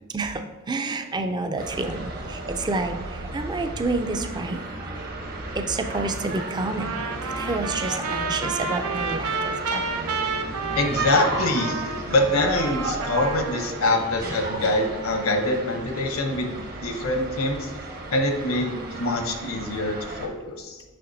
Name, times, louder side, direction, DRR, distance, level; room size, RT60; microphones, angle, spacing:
voice 1, 0.7-5.0 5.6-6.9 7.2-10.0, right 3 dB, 20° right, 6 dB, 0.3 m, -29 dB
sound 1, 1.6-20.3, right 2 dB, 45° right, 0.9 m, -34 dB
Trumpet, 6.8-13.8, right 4 dB, 85° right, 0.5 m, -30 dB
voice 2, 10.8-17.7 18.1-20.8, left 2 dB, 70° left, 5 dB, 0.7 m, -25 dB
6.7 x 5.6 x 2.6 m, 1.2 s
head